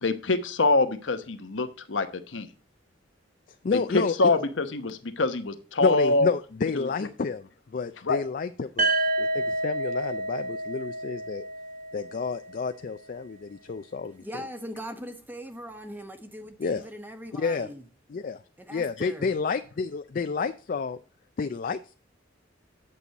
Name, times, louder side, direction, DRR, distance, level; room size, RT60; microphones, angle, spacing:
voice 1, 0.0-2.5 3.7-6.3 6.7-6.9 8.0-8.2, left 3 dB, 80° left, 1.0 m, -25 dB
voice 2, 3.6-4.1 5.8-8.9 9.2-11.4 11.9-14.5 16.6-16.9 17.3-17.7 18.1-18.4 18.7-21.0 21.4-21.9, left 5 dB, 45° left, 0.4 m, -30 dB
sound 1, 8.8-12.7, right 2 dB, 45° right, 1.0 m, -29 dB
voice 3, 14.2-17.8 18.6-19.3, equal, 10° right, 1.0 m, -40 dB
8.4 x 6.9 x 4.0 m
head